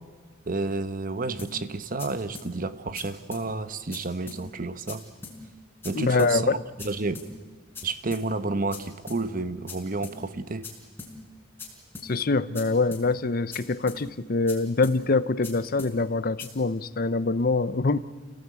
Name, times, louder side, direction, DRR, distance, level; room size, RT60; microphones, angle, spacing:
voice 1, 0.5-5.0 5.8-7.2 7.8-10.7, right 3 dB, 45° right, 12 dB, 1.0 m, -30 dB
sound 1, 1.4-1.5 2.0-2.1 2.3-2.5 2.9-3.0 3.3-3.4 3.9-4.0 4.3-4.4 4.9-5.0 5.2-5.4 5.8-5.9 6.2-6.3 6.8-6.9 7.1-7.3 7.7-7.8 8.1-8.2 8.7-8.8 9.1-9.2 9.7-9.8 10.0-10.2 10.6-10.7 11.0-11.1 11.6-11.7 11.9-12.1 12.5-12.6 12.9-13.0 13.5-13.6 13.9-14.0 14.5-14.6 14.8-15.0 15.4-15.5 15.8-15.9 16.4-16.5, left 4 dB, 10° left, 5.0 m, -40 dB
voice 2, 5.9-6.6 12.0-18.0, left 3 dB, 45° left, 14 dB, 0.7 m, -24 dB
28.0 x 17.5 x 8.4 m, 1.5 s
head